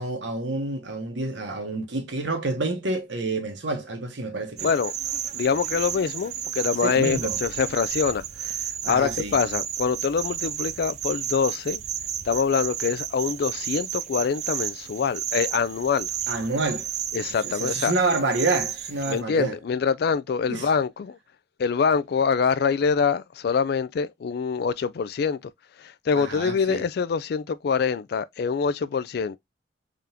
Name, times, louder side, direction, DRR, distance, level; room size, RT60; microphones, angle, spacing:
voice 1, 0.0-4.7 6.8-7.4 8.8-9.3 16.3-16.9 17.4-19.5 20.5-20.7 26.2-26.8, right 3 dB, 70° right, 1.1 m, -28 dB
voice 2, 4.6-4.9 5.3-11.8 12.2-16.1 17.1-17.9 19.1-21.2 21.6-25.4 25.8-29.4, left 6 dB, 55° left, 0.3 m, -25 dB
sound 1, 4.6-19.2, right 10 dB, 35° right, 0.3 m, -32 dB
3.7 x 3.4 x 2.7 m
head